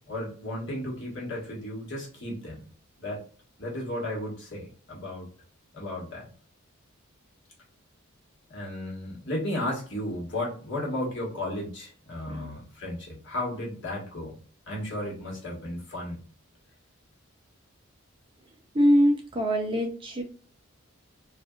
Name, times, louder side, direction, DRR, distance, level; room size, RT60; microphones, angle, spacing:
voice 1, 0.1-2.6 3.0-3.2 3.6-5.3 5.7-6.3 8.5-14.4 14.7-16.2, left 1 dB, 60° left, -3 dB, 1.4 m, -34 dB
voice 2, 18.7-20.2, equal, 25° right, 2 dB, 0.6 m, -23 dB
3.3 x 2.5 x 2.3 m, 0.42 s
head